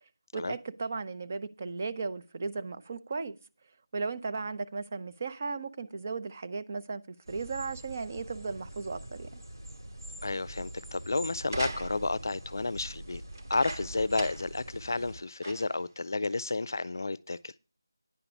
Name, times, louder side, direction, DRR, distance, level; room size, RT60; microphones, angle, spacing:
voice 1, 0.3-3.4 3.9-7.0 7.3-9.4, right 4 dB, 35° right, 0.7 m, -36 dB
sound 1, 7.3-15.2, right 1 dB, 85° right, 3.4 m, -44 dB
voice 2, 10.2-13.2 13.5-17.5, left 3 dB, 60° left, 0.5 m, -31 dB
sound 2, 11.4-12.2 13.3-14.6 15.0-15.1 15.4-15.9 16.6-16.7, right 2 dB, 55° right, 1.5 m, -40 dB
10.0 x 5.9 x 6.9 m
figure-of-eight pair, 170°, 2 cm